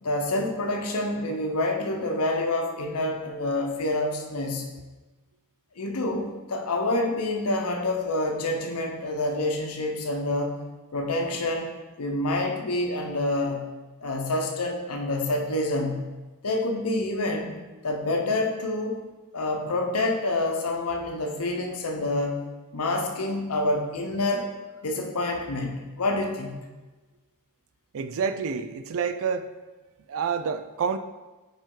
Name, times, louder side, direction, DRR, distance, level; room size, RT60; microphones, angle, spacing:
voice 1, 0.0-4.7 5.8-10.5 10.9-11.7 12.0-13.7 14.0-16.1 16.4-17.6 17.8-19.0 19.3-22.4 22.7-24.5 24.8-26.6, left 2 dB, 75° left, 2 dB, 0.8 m, -27 dB
voice 2, 27.9-29.5 30.1-31.0, right 6 dB, 65° right, 10 dB, 0.4 m, -28 dB
5.2 x 5.0 x 3.8 m, 1.2 s
head